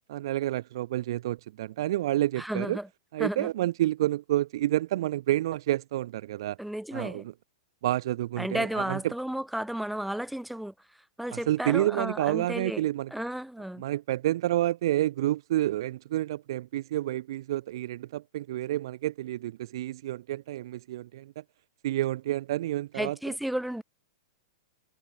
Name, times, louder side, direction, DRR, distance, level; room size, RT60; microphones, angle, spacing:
voice 1, 0.1-2.8 3.1-6.6 6.9-7.3 7.8-9.0 11.3-13.1 13.8-21.4 21.8-23.2, right 14 dB, 65° right, 0.7 m, -29 dB
voice 2, 2.4-2.9 3.2-3.5 6.6-7.3 8.4-10.7 11.2-12.8 13.1-13.8 22.9-23.8, right 1 dB, ahead, 3.4 m, -33 dB
hypercardioid pair, 145°, 3 cm